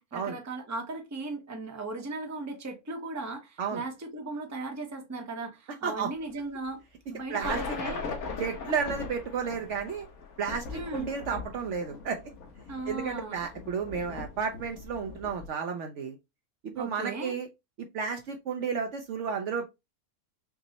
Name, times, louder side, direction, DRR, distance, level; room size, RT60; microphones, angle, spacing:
voice 1, 0.0-6.8 7.1-8.0 10.7-11.1 12.7-13.4 16.8-17.3, right 3 dB, 15° right, 0.6 m, -37 dB
voice 2, 7.3-7.6 7.9-8.0 8.4-10.1 10.4-12.2 12.9-16.2 16.6-17.5 17.8-19.7, right 6 dB, 65° right, 0.8 m, -32 dB
sound 1, 7.4-15.5, left 4 dB, 80° left, 1.4 m, -40 dB
5.9 x 2.1 x 2.7 m
omnidirectional pair, 1.5 m